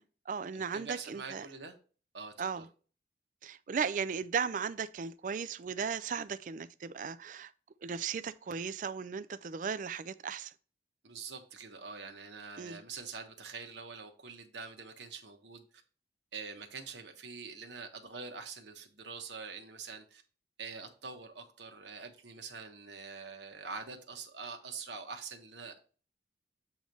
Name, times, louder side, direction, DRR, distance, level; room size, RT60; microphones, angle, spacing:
voice 1, 0.0-1.5 2.4-2.7 3.4-7.5 7.8-10.5 12.6-12.8, right 6 dB, 45° right, 0.4 m, -36 dB
voice 2, 0.5-1.8 2.1-2.6 11.0-15.6 16.3-20.2 20.6-25.9, right 5 dB, 80° right, 1.2 m, -45 dB
7.9 x 3.1 x 5.3 m
head